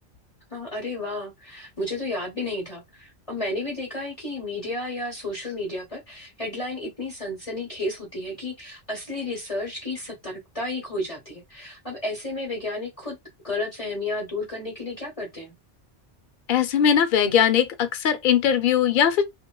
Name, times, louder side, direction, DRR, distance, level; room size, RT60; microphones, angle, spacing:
voice 1, 0.5-13.2 13.4-15.5, left 2 dB, 30° left, 1.0 m, -32 dB
voice 2, 16.5-19.2, left 8 dB, 55° left, 0.7 m, -20 dB
2.9 x 2.8 x 2.2 m
omnidirectional pair, 1.2 m